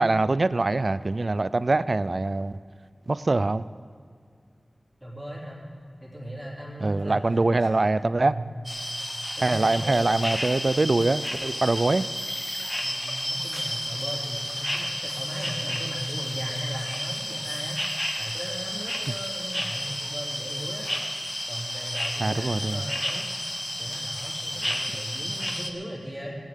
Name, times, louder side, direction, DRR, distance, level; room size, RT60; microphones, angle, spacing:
voice 1, 0.0-2.6 3.1-3.7 6.8-8.4 9.4-12.1 19.1-19.2 22.2-22.8 24.9-25.0, right 2 dB, 55° right, 16 dB, 0.4 m, -24 dB
voice 2, 5.0-5.6 6.0-7.7 8.2-8.4 9.4-10.7 12.8-20.9 21.5-23.3 23.8-26.4, equal, 5° right, -5 dB, 3.1 m, -37 dB
sound 1, 8.6-25.7, equal, 15° left, 1.3 m, -31 dB
17.0 x 16.5 x 3.7 m, 2.3 s
wide cardioid pair, 65°, 0 cm